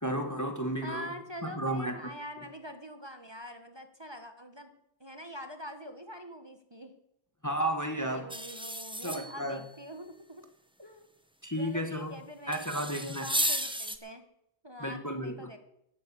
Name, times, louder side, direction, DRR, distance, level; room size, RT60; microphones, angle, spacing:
voice 1, 0.0-1.1 1.4-2.0 7.4-8.3 9.0-9.6 11.4-12.2 12.5-13.2 14.8-15.5, right 1 dB, 15° left, 5 dB, 1.5 m, -33 dB
voice 2, 0.8-4.7 5.0-6.9 8.1-10.4 10.8-11.1 11.5-14.2 14.6-15.6, equal, 20° right, 6 dB, 1.2 m, -44 dB
sound 1, 8.3-9.6 12.5-14.0, right 1 dB, 5° right, 0.8 m, -33 dB
13.5 x 9.1 x 8.6 m, 0.78 s
omnidirectional pair, 1.4 m